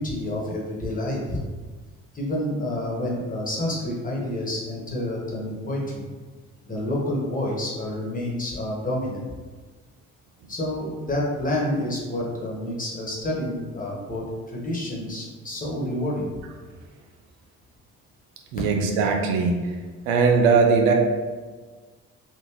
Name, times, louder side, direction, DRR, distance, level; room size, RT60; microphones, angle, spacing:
voice 1, 0.0-1.4 2.1-6.1 6.6-9.2 10.5-16.4, left 1 dB, 25° left, -4 dB, 1.2 m, -28 dB
voice 2, 18.5-19.7 20.1-20.9, right 5 dB, 85° right, 2 dB, 0.5 m, -20 dB
3.5 x 2.5 x 2.9 m, 1.4 s
hypercardioid pair, 50°, 35 cm